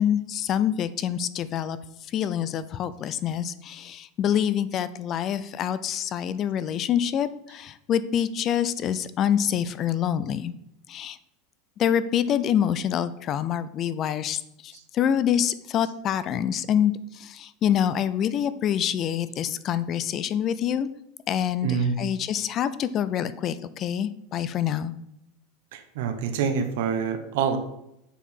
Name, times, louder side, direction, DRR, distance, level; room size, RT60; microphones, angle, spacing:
voice 1, 0.0-1.8 2.1-10.5 10.9-11.2 11.8-20.9 21.3-24.9, left 9 dB, 30° left, 15 dB, 0.4 m, -26 dB
voice 2, 21.6-21.9 25.7-27.6, right 6 dB, 70° right, 7 dB, 1.1 m, -26 dB
7.1 x 4.8 x 5.4 m, 0.80 s
supercardioid pair, 160°, 0 cm